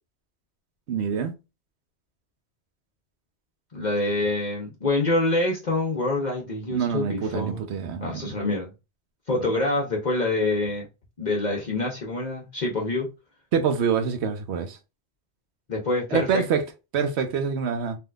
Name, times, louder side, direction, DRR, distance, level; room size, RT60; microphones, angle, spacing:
voice 1, 0.9-1.3 6.7-8.4 13.5-14.8 16.1-16.6 16.9-18.0, right 6 dB, 85° right, 0.9 m, -26 dB
voice 2, 3.7-7.6 8.0-8.7 9.3-10.9 11.2-13.1 15.7-16.4, left 2 dB, 45° left, 0.9 m, -26 dB
3.5 x 2.6 x 2.2 m
omnidirectional pair, 1.1 m